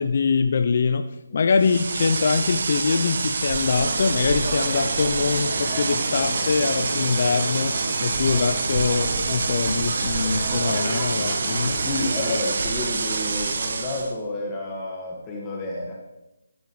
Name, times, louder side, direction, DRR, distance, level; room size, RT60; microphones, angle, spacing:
voice 1, 0.0-7.7 8.0-11.8, left 5 dB, 50° left, 8 dB, 0.5 m, -23 dB
sound 1, 1.6-14.1, right 4 dB, 55° right, 1.1 m, -27 dB
sound 2, 3.6-12.4, right 1 dB, 30° right, 3.5 m, -32 dB
voice 2, 11.6-15.9, left 2 dB, 15° left, -3 dB, 1.6 m, -30 dB
13.0 x 9.7 x 3.2 m, 0.92 s
figure-of-eight pair, 160°, 0 cm